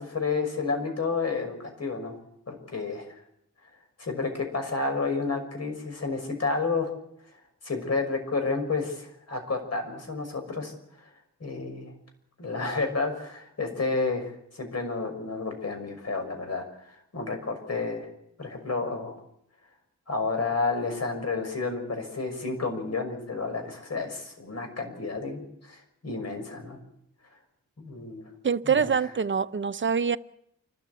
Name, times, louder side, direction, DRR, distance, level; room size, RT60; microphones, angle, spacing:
voice 1, 0.0-2.1 2.5-3.1 4.0-6.9 7.6-10.7 11.4-11.9 12.4-18.1 18.4-19.2 20.1-26.8 27.8-28.3 28.7-28.9, left 4 dB, 55° left, 6.2 m, -31 dB
voice 2, 28.4-30.2, right 6 dB, 40° right, 0.8 m, -25 dB
28.0 x 13.5 x 8.2 m
wide cardioid pair, 95°, 31 cm